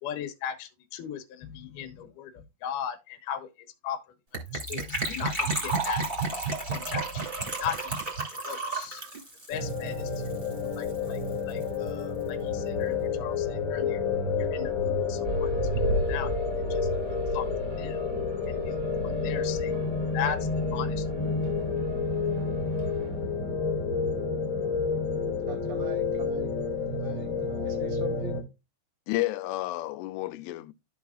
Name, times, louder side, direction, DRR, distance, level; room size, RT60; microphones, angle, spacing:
voice 1, 0.0-3.5 3.8-4.0 4.5-6.1 6.7-7.8 8.4-9.0 9.5-10.4 10.8-11.2 11.5-14.0 14.4-15.6 16.1-16.3 16.7-16.9 17.3-17.5 17.8-18.0 18.5-19.7 20.1-21.1, left 9 dB, 65° left, 2.4 m, -37 dB
Gurgling / Trickle dribble / Fill (with liquid), 4.3-10.6 10.8-10.9 11.1-11.3 11.6-11.7, right 3 dB, 15° right, 2.1 m, -31 dB
sound 1, 9.5-28.4, left 4 dB, 30° left, 1.9 m, -29 dB
feuerwehr-faehrt-vorbei, 15.2-23.3, right 3 dB, 85° right, 2.2 m, -36 dB
voice 2, 25.5-26.5 26.9-28.4, right 5 dB, 65° right, 1.7 m, -42 dB
voice 3, 29.1-30.7, left 18 dB, 90° left, 2.6 m, -31 dB
13.5 x 4.7 x 2.4 m
omnidirectional pair, 4.6 m